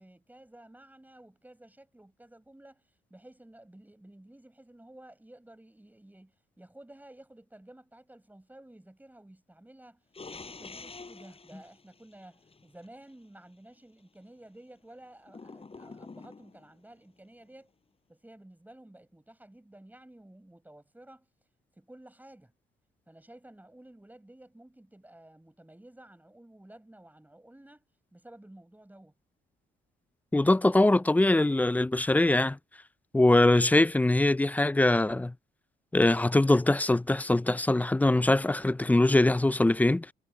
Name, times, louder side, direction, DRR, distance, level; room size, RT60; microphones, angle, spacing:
voice 1, 0.0-2.8 3.1-10.0 10.3-17.7 18.1-21.3 21.8-22.5 23.1-27.8 28.1-29.2, right 1 dB, 10° right, 6.7 m, -53 dB
sound 1, 10.1-12.9 15.3-16.7, left 4 dB, 30° left, 8.0 m, -47 dB
voice 2, 30.3-32.6 33.1-35.3 35.9-40.1, left 2 dB, 10° left, 0.4 m, -23 dB
cardioid pair, 90°, 20 cm